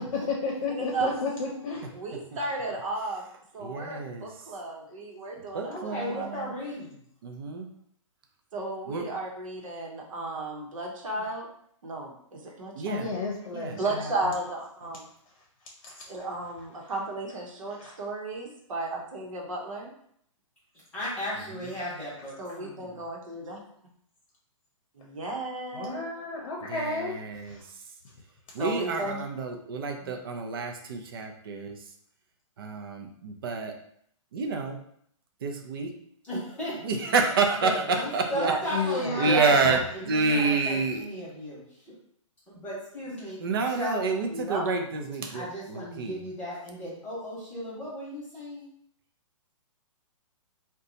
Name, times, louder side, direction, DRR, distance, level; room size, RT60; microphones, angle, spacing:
voice 1, 0.1-1.8 12.9-14.3 15.8-16.0 17.8-17.9 25.7-27.1 27.5-27.6 38.7-39.3 39.6-39.8, left 3 dB, 75° left, -2 dB, 0.7 m, -32 dB
voice 2, 0.8-1.1 1.9-3.2 3.5-6.5 8.5-11.5 11.8-13.2 13.7-15.1 16.1-19.9 22.4-23.6 25.0-26.0 28.6-29.2 30.0-30.1 38.3-38.6 39.2-39.5 44.3-44.7, right 2 dB, 75° right, 0 dB, 0.9 m, -34 dB
voice 3, 3.6-4.3 5.5-6.6 7.2-7.7 8.9-9.1 12.7-13.1 13.5-13.8 21.5-21.7 26.7-27.6 28.5-31.8 32.6-33.7 34.3-34.8 35.4-35.9 36.8-37.7 38.1-38.5 39.2-41.1 43.4-46.2, right 4 dB, 45° right, 3 dB, 0.4 m, -28 dB
voice 4, 5.7-7.0 20.9-23.0 36.3-36.8 37.6-41.6 41.9-42.0 42.5-44.0 45.3-48.7, left 1 dB, 5° left, -11 dB, 0.8 m, -35 dB
2.6 x 2.2 x 3.8 m, 0.67 s
hypercardioid pair, 175°, 17 cm